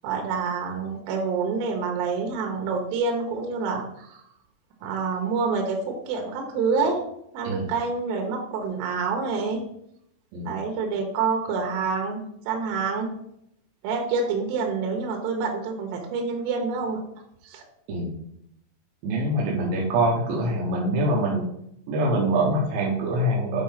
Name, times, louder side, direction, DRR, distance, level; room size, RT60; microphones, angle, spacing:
voice 1, 0.0-4.2 4.8-7.0 7.3-9.6 10.4-13.1 13.8-17.0 17.4-17.6, right 4 dB, 80° right, 2 dB, 3.8 m, -27 dB
voice 2, 19.0-21.5 21.9-23.6, right 1 dB, 65° right, -3 dB, 2.6 m, -24 dB
9.2 x 4.2 x 5.7 m, 0.74 s
omnidirectional pair, 5.6 m